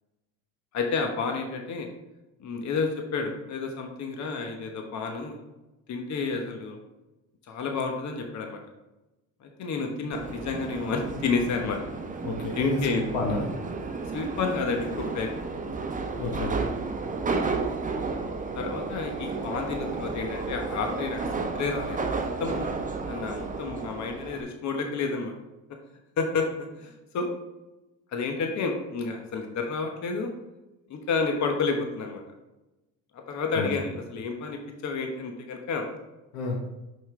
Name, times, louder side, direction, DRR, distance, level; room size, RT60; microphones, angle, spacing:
voice 1, 0.7-1.9 2.4-5.4 5.9-6.8 7.5-8.6 9.4-11.8 12.6-13.0 14.1-15.3 18.5-22.0 22.4-22.7 23.0-25.3 26.2-27.3 28.1-30.3 30.9-32.2 33.1-35.8, left 4 dB, 55° left, 3 dB, 1.1 m, -30 dB
Subway metro underground, 10.1-24.4, right 4 dB, 25° right, 1.0 m, -32 dB
voice 2, 12.2-13.5 16.2-16.5 33.5-33.7 36.3-36.6, left 2 dB, 80° left, 2 dB, 1.3 m, -30 dB
5.6 x 5.5 x 3.3 m, 1.0 s
supercardioid pair, 75°, 34 cm